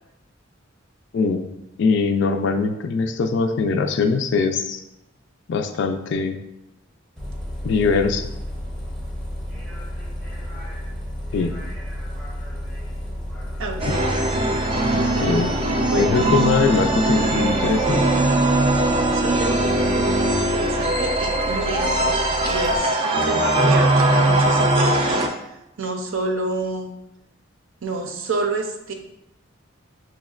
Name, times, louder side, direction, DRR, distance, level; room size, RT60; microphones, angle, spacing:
voice 1, 1.1-1.5 1.8-4.8 5.5-6.4 7.6-8.3 11.3-11.6 15.2-15.5 15.9-18.0, left 4 dB, 60° left, 7 dB, 0.3 m, -21 dB
Bus, 7.2-22.8, equal, 5° left, 0.6 m, -32 dB
voice 2, 13.6-14.1 15.9-16.2 19.1-22.2 22.4-25.3 25.8-26.9 27.8-28.9, right 3 dB, 75° right, 4 dB, 0.5 m, -28 dB
sound 1, 13.8-25.3, right 1 dB, 30° right, 0.3 m, -20 dB
6.1 x 2.1 x 2.3 m, 0.89 s
head